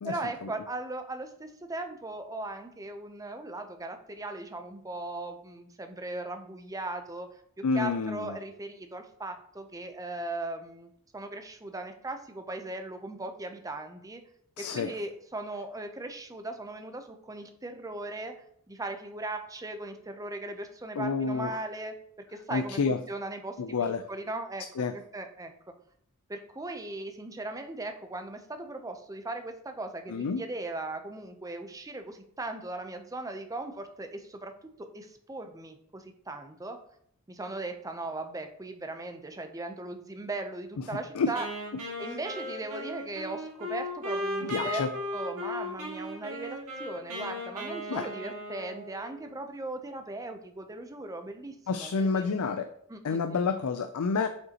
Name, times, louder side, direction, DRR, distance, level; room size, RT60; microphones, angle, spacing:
voice 1, 0.0-7.3 7.6-14.2 14.6-18.3 18.7-21.9 22.3-25.5 26.3-34.5 34.8-36.8 37.3-41.4 42.0-44.9 45.1-52.3 52.9-53.4, right 2 dB, 15° right, 6 dB, 0.6 m, -38 dB
voice 2, 7.6-8.3 14.6-14.9 21.0-21.6 22.5-23.0 23.6-24.1 24.8-24.9 30.1-30.4 41.1-41.3 44.4-44.9 47.9-48.1 51.7-52.7 53.0-54.3, left 4 dB, 85° left, 9 dB, 0.4 m, -29 dB
Wind instrument woodwind instrument, 41.4-49.3, left 1 dB, 85° right, 2.1 m, -36 dB
7.9 x 5.4 x 2.9 m, 0.68 s
head